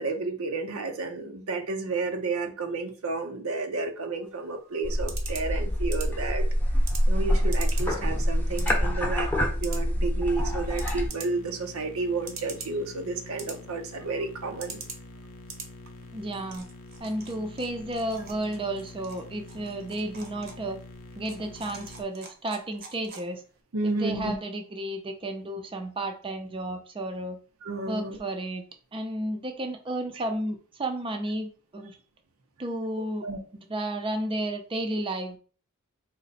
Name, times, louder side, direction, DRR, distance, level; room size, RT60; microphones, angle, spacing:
voice 1, 0.0-6.5 7.1-14.8 23.7-24.3 27.6-28.2 33.2-33.4, right 3 dB, 85° right, 6 dB, 0.7 m, -31 dB
sound 1, 4.2-23.6, right 4 dB, 50° right, 0.8 m, -46 dB
sound 2, 4.8-11.1, equal, 10° left, 0.7 m, -26 dB
sound 3, 10.5-22.0, left 2 dB, 70° left, 0.6 m, -46 dB
voice 2, 16.1-16.7 17.0-20.8 21.2-23.4 23.8-27.4 27.9-28.6 28.9-31.9 32.6-33.3 33.7-35.4, right 1 dB, 25° right, 5 dB, 0.5 m, -32 dB
3.9 x 2.1 x 4.1 m, 0.39 s
head